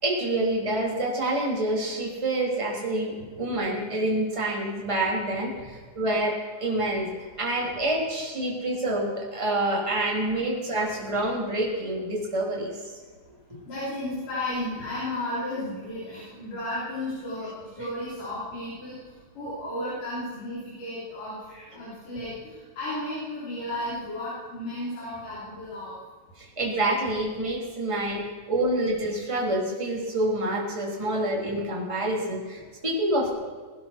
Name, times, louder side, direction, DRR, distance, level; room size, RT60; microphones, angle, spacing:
voice 1, 0.0-7.1 7.4-12.7 26.4-33.3, right 1 dB, 10° right, -3 dB, 2.9 m, -27 dB
voice 2, 13.7-19.0 19.4-26.0 27.9-28.0, left 1 dB, 85° left, -10 dB, 5.5 m, -34 dB
20.0 x 11.5 x 4.4 m, 1.5 s
omnidirectional pair, 3.7 m